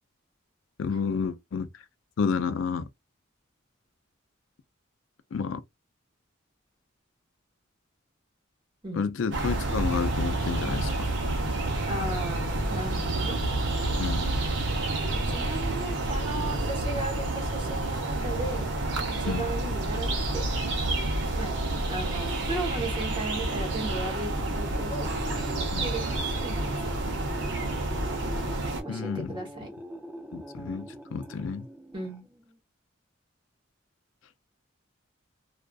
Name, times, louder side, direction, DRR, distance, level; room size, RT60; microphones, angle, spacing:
voice 1, 0.8-1.7 2.2-2.9 5.3-5.6 8.9-11.1 14.0-14.4 19.3-19.5 25.7-25.9 28.9-29.3 30.3-31.7, left 5 dB, 75° left, 0.4 m, -30 dB
sound 1, 9.3-28.8, right 2 dB, 65° right, 0.7 m, -29 dB
voice 2, 11.9-13.4 15.1-18.7 19.2-20.4 21.3-21.6 21.9-26.0 26.4-26.7 28.8-29.7 31.9-32.2, right 2 dB, 25° right, 1.1 m, -36 dB
sound 2, 21.5-32.6, equal, 10° right, 0.4 m, -43 dB
2.4 x 2.4 x 2.3 m
head